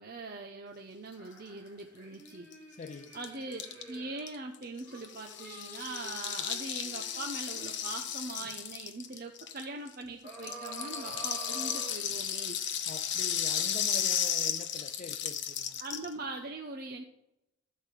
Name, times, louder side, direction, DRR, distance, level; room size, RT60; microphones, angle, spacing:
voice 1, 0.0-2.5 3.1-12.6 15.8-17.0, right 2 dB, 45° right, 0.8 m, -42 dB
sound 1, 1.2-4.3 4.8-8.5 10.2-12.6 13.1-13.2, right 3 dB, 10° left, 4.6 m, -49 dB
Rattle (instrument), 2.3-2.4 2.5-2.6 2.8-9.9 10.3-16.1, left 9 dB, 60° left, 0.9 m, -34 dB
voice 2, 2.7-3.1 12.9-15.8, left 5 dB, 35° left, 0.3 m, -44 dB
12.5 x 4.7 x 8.2 m
head